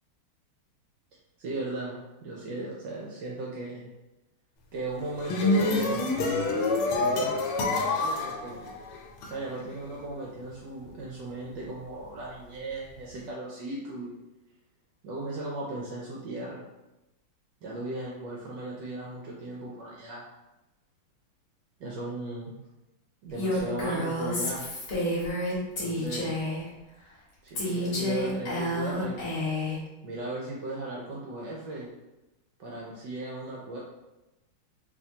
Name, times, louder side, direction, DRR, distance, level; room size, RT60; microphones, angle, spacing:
voice 1, 1.4-3.9 4.7-6.2 7.0-7.3 7.7-8.6 9.2-14.1 15.0-16.6 17.6-20.2 21.8-22.6 23.2-24.7 25.8-26.3 27.4-29.5 30.0-31.9 32.6-33.8, right 2 dB, 75° right, -3 dB, 1.1 m, -36 dB
sound 1, 5.0-9.3, left 2 dB, 80° left, 1.5 m, -27 dB
Female speech woman speaking, 23.4-26.7 27.5-29.8, left 1 dB, 50° left, 1.2 m, -30 dB
3.5 x 2.9 x 2.7 m, 1.0 s
omnidirectional pair, 2.4 m